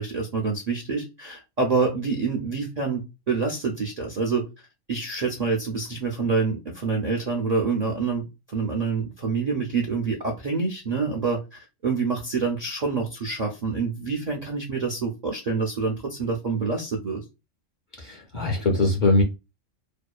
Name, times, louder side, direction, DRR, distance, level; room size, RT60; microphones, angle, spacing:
voice 1, 0.0-4.4 4.9-8.2 8.5-17.2, right 4 dB, 60° right, 0.4 m, -27 dB
voice 2, 18.0-19.2, left 2 dB, 50° left, 0.6 m, -22 dB
2.7 x 2.2 x 2.3 m
omnidirectional pair, 1.3 m